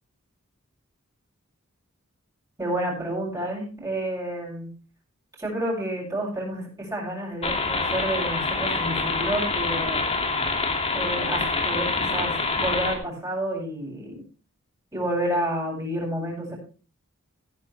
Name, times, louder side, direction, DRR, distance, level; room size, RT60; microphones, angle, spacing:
voice 1, 2.6-4.7 5.4-10.0 10.9-14.2 14.9-16.6, right 1 dB, 15° right, -3 dB, 8.0 m, -30 dB
sound 1, 7.4-13.0, left 3 dB, 30° left, 2.6 m, -26 dB
17.5 x 10.5 x 3.5 m, 0.35 s
head